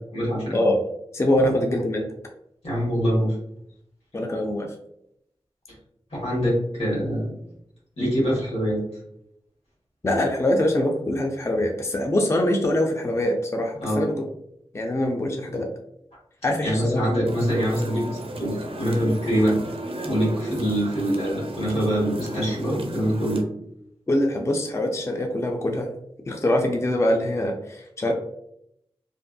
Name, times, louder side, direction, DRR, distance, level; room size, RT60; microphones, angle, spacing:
voice 1, 0.1-0.5 1.4-1.5 2.6-3.4 6.1-7.3 8.0-8.8 13.8-14.0 16.6-19.6 20.0-23.4, equal, 85° left, -6 dB, 1.4 m, -24 dB
voice 2, 1.1-2.1 4.1-4.7 10.0-14.3 14.7-15.7 16.4-17.1 24.1-25.9 26.3-28.1, left 1 dB, 25° left, 2 dB, 0.4 m, -23 dB
sound 1, 17.3-23.4, right 1 dB, 60° right, 0.4 m, -35 dB
2.6 x 2.4 x 2.2 m, 0.75 s
cardioid pair, 40°, 10 cm